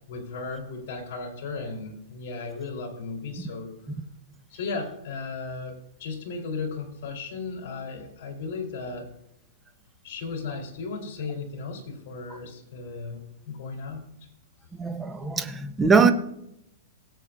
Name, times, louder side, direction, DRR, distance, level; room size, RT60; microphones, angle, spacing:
voice 1, 0.1-3.7 4.5-9.1 10.0-14.0, left 4 dB, 50° left, 3.7 m, -35 dB
voice 2, 14.8-16.1, right 5 dB, 10° right, 0.8 m, -21 dB
18.0 x 8.3 x 2.6 m
hypercardioid pair, 155°, 0 cm